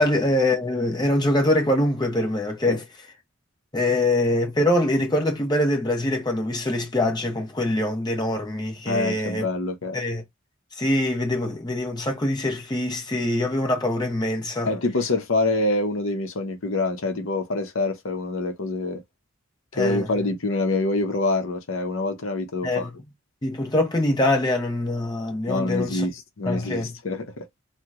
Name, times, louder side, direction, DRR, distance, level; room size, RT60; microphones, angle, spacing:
voice 1, 0.0-2.8 3.7-9.4 9.9-10.2 10.8-14.7 19.7-20.1 22.6-23.0 23.4-26.0 26.5-26.9, left 1 dB, 20° left, 0.9 m, -24 dB
voice 2, 8.9-10.0 14.6-19.0 19.8-22.9 25.5-27.6, left 2 dB, 65° left, 0.7 m, -26 dB
2.9 x 2.1 x 3.5 m
head